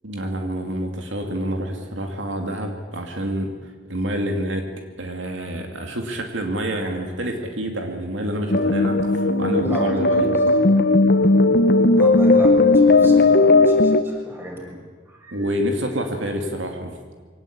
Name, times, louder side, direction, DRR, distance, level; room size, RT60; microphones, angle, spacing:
voice 1, 0.0-4.6 5.0-10.3 15.3-17.0, right 1 dB, 70° right, 3 dB, 2.5 m, -27 dB
sound 1, 8.5-14.0, left 3 dB, 50° left, 1.1 m, -16 dB
voice 2, 9.5-10.7 12.0-14.8 15.1-15.5, right 1 dB, 10° right, -1 dB, 6.1 m, -34 dB
23.5 x 18.0 x 8.7 m, 1.5 s
head